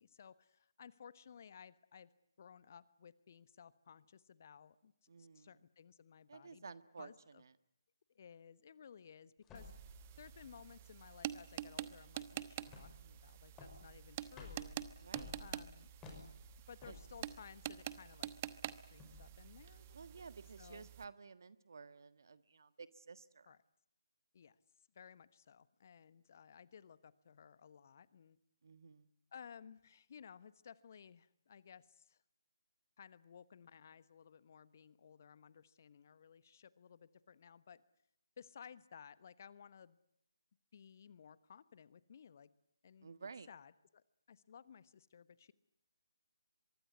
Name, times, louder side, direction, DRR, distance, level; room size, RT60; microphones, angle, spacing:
voice 1, 0.0-2.1 2.4-6.6 7.0-7.4 8.1-9.7 10.2-14.9 15.4-15.9 16.7-18.3 18.9-20.0 20.6-20.9 23.5-23.6 24.3-24.6 24.9-28.4 29.3-32.2 33.0-37.8 38.4-40.0 40.7-42.5 42.8-45.5, left 7 dB, 40° left, 17 dB, 1.2 m, -58 dB
voice 2, 5.1-5.6 6.3-7.5 15.0-15.4 16.9-17.0 19.9-23.5 28.6-29.1 43.0-43.5, right 5 dB, 55° right, 14 dB, 1.5 m, -53 dB
sound 1, 9.4-20.6, left 2 dB, 10° left, 5.7 m, -57 dB
sound 2, 9.5-21.1, right 12 dB, 25° right, 1.0 m, -47 dB
24.0 x 23.0 x 9.6 m, 0.73 s
figure-of-eight pair, 145°, 2 cm